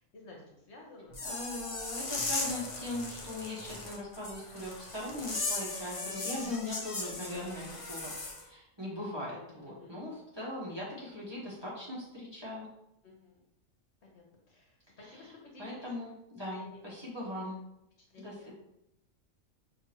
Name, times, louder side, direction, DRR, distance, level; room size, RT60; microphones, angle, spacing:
voice 1, 0.0-1.2 6.0-6.3 9.1-10.0 13.0-13.4 14.0-15.9 16.5-17.1 18.0-18.5, left 2 dB, 60° left, -1 dB, 1.1 m, -53 dB
sound 1, 1.1-8.4, left 3 dB, 35° left, 0.5 m, -38 dB
voice 2, 1.2-8.1 8.4-12.7 15.0-15.1 15.6-17.6 18.2-18.5, left 1 dB, 20° right, -8 dB, 1.2 m, -40 dB
5.9 x 2.8 x 2.9 m, 0.85 s
omnidirectional pair, 1.4 m